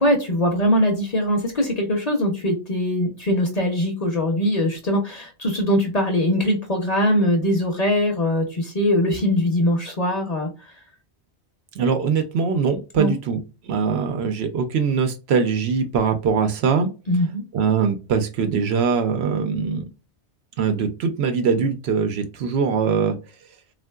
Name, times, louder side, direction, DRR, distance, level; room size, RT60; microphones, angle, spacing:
voice 1, 0.0-10.5 13.0-13.1 17.1-17.4, equal, 45° left, 2 dB, 0.6 m, -21 dB
voice 2, 11.8-16.9 17.5-19.8 20.6-23.2, right 6 dB, 70° right, 7 dB, 0.8 m, -22 dB
3.5 x 2.4 x 2.2 m, 0.31 s
omnidirectional pair, 1.2 m